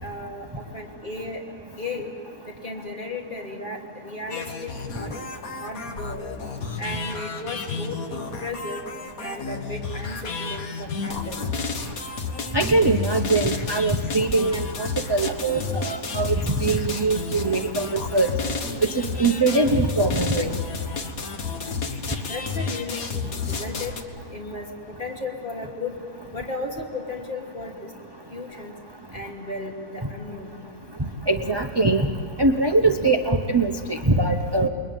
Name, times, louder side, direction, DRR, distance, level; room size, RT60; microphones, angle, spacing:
voice 1, 0.0-1.4 1.8-2.1 2.5-5.1 5.6-6.2 6.8-8.8 9.2-11.4 22.2-23.9 24.3-25.9 26.3-27.9 28.3-28.7 29.1-30.6, left 2 dB, 30° left, 0 dB, 3.2 m, -35 dB
sound 1, 4.3-24.0, left 4 dB, 60° left, 1.9 m, -31 dB
voice 2, 12.5-16.3 16.6-18.3 18.9-20.6 31.3-32.1 32.4-34.7, right 3 dB, 25° right, 5 dB, 0.6 m, -22 dB
29.0 x 22.0 x 9.2 m, 2.4 s
omnidirectional pair, 1.7 m